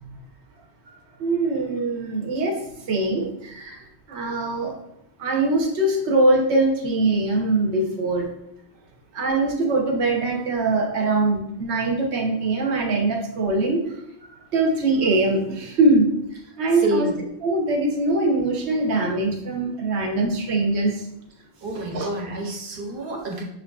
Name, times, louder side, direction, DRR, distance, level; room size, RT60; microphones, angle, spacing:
voice 1, 1.2-2.6 2.9-3.8 4.1-4.7 5.2-8.3 9.1-14.0 14.2-16.1 16.6-17.1 17.4-21.1 21.7-22.1, right 2 dB, 85° right, 1 dB, 1.0 m, -22 dB
voice 2, 16.8-17.1 21.6-23.4, right 1 dB, 60° right, 1 dB, 0.9 m, -28 dB
6.4 x 2.5 x 2.3 m, 0.79 s
omnidirectional pair, 1.1 m